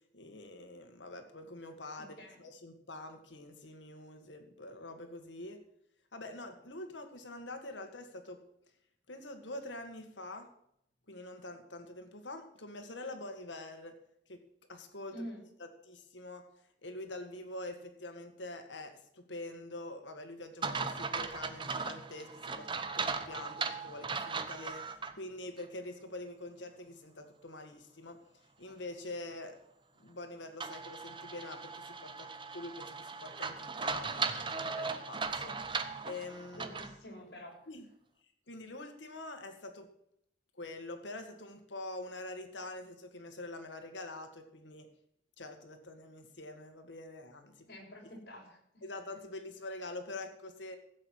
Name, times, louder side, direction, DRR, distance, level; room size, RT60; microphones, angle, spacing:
voice 1, 0.1-5.6 6.1-8.4 9.1-10.5 11.1-13.9 14.3-14.4 14.7-15.3 15.6-16.4 16.8-22.7 22.9-28.2 28.6-29.6 30.0-32.3 32.5-35.5 36.1-36.7 37.7-37.9 38.5-39.9 40.5-44.9 45.4-47.5 48.8-50.8, left 2 dB, 90° left, 6 dB, 1.9 m, -45 dB
voice 2, 2.0-2.4 15.1-15.4 35.4-35.6 36.6-37.5 47.7-48.8, equal, 60° left, -2 dB, 6.3 m, -48 dB
sound 1, 20.6-25.1 25.6-25.7 30.6-37.0, right 4 dB, 25° right, 0.9 m, -38 dB
16.0 x 7.9 x 6.6 m, 0.73 s
head